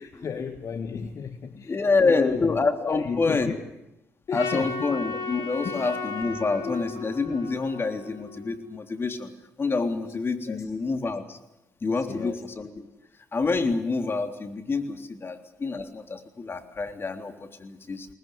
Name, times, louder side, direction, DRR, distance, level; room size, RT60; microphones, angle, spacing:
voice 1, 0.0-3.6 4.3-4.9 5.6-5.9 6.6-6.8 10.5-10.7 12.0-12.4, left 6 dB, 55° left, 9 dB, 1.6 m, -34 dB
voice 2, 1.6-3.5 4.3-9.3 9.6-11.4 11.8-12.9 13.3-18.1, left 4 dB, 35° left, 7 dB, 3.5 m, -27 dB
Trumpet, 4.3-8.7, left 4 dB, 75° left, 3.9 m, -35 dB
23.0 x 19.5 x 9.3 m, 0.89 s
supercardioid pair, 60°, 6 cm